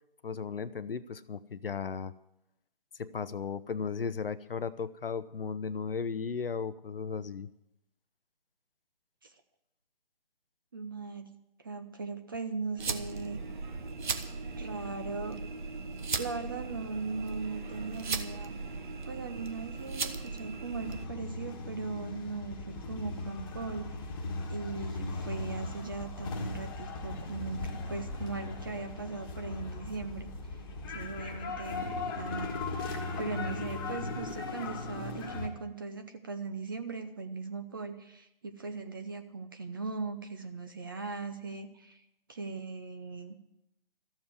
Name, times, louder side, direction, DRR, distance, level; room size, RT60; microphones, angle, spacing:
voice 1, 0.2-2.1 3.0-7.5, left 5 dB, 70° left, 13 dB, 0.7 m, -35 dB
voice 2, 10.7-11.3 11.6-13.4 14.6-15.4 16.2-18.5 19.1-23.9 24.5-30.3 30.9-31.9 32.2-42.0 42.3-43.3, right 4 dB, 25° right, 7 dB, 0.6 m, -39 dB
sound 1, 12.8-21.1, right 4 dB, 55° right, 1.2 m, -37 dB
sound 2, 20.8-35.5, left 3 dB, 25° left, 1.5 m, -38 dB
14.0 x 7.3 x 9.6 m, 0.84 s
figure-of-eight pair, 155°, 29 cm